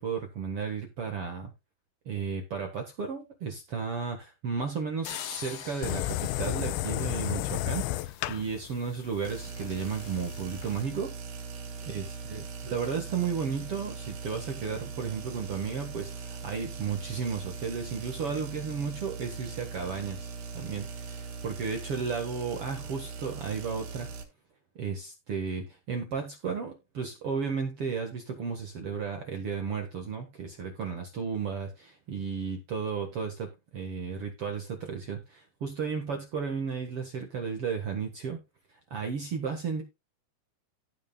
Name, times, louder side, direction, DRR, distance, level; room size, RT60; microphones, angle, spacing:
voice 1, 0.0-1.5 2.0-11.1 11.8-24.1 24.8-38.4 38.9-39.8, right 6 dB, 75° right, 1.3 m, -34 dB
sound 1, 5.0-7.9, left 9 dB, 65° left, 2.6 m, -43 dB
sound 2, 5.8-10.8, left 16 dB, 85° left, 2.9 m, -33 dB
sound 3, 9.2-24.2, right 5 dB, 60° right, 3.5 m, -40 dB
16.5 x 5.6 x 2.3 m
omnidirectional pair, 5.2 m